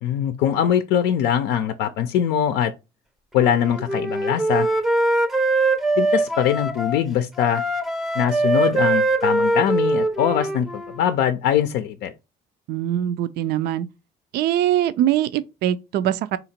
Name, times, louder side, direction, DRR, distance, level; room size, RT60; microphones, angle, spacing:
voice 1, 0.0-2.7 3.3-4.7 6.0-7.6 8.1-12.1, left 9 dB, 85° left, 0.5 m, -22 dB
Wind instrument woodwind instrument, 3.4-7.0 7.4-11.0, right 2 dB, ahead, 0.5 m, -22 dB
voice 2, 12.7-13.9 14.3-16.4, right 12 dB, 75° right, 0.4 m, -22 dB
3.9 x 2.8 x 4.3 m
cardioid pair, 110°, 17 cm